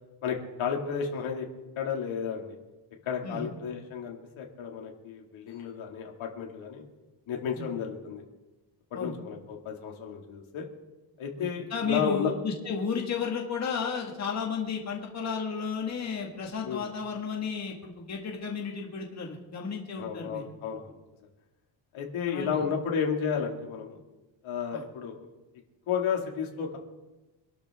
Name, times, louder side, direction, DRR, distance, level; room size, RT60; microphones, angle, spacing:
voice 1, 0.2-1.5 1.8-2.6 3.1-6.8 7.3-8.2 9.0-10.7 11.2-12.3 16.6-16.9 20.0-21.0 21.9-24.0 24.4-25.2 25.9-26.8, left 7 dB, 75° left, 1 dB, 2.8 m, -32 dB
voice 2, 11.4-20.5 22.3-22.6 24.7-24.8, left 5 dB, 35° left, 0 dB, 2.1 m, -33 dB
26.0 x 12.5 x 3.8 m, 1.1 s
cardioid pair, 165°, 48 cm